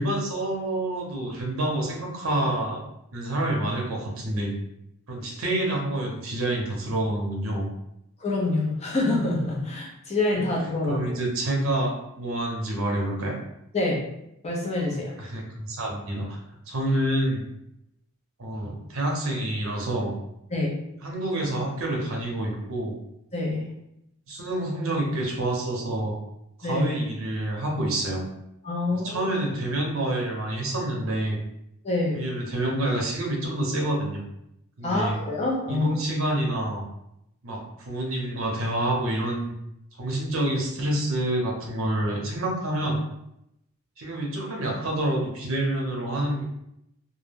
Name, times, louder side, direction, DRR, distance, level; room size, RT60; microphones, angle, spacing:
voice 1, 0.0-2.8 3.1-4.5 5.1-7.7 10.9-13.4 15.2-16.4 16.7-17.4 18.4-20.1 21.0-23.0 24.3-26.2 26.6-28.2 28.9-31.4 32.1-34.2 34.8-35.2 35.7-36.8 37.4-39.5 40.0-43.0 44.0-46.4, right 1 dB, 65° right, -1 dB, 0.7 m, -27 dB
voice 2, 8.2-11.2 13.7-14.0 14.4-15.2 20.5-20.7 23.3-23.7 26.6-26.9 28.6-29.3 31.8-32.2 34.8-36.0, left 2 dB, 30° left, -2 dB, 0.6 m, -26 dB
2.2 x 2.1 x 3.3 m, 0.81 s
head